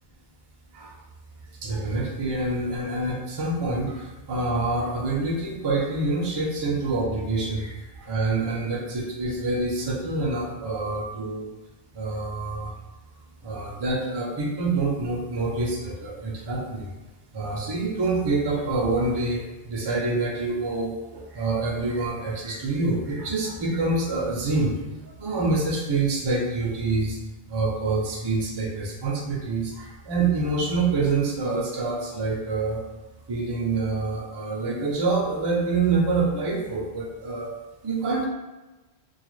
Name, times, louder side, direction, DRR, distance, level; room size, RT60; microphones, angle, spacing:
voice 1, 1.6-11.5 11.9-12.7 13.4-16.9 17.3-27.2 27.5-32.8 33.3-37.5 37.8-38.3, right 3 dB, 40° right, -2 dB, 0.3 m, -26 dB
2.3 x 2.2 x 3.1 m, 1.1 s
omnidirectional pair, 1.1 m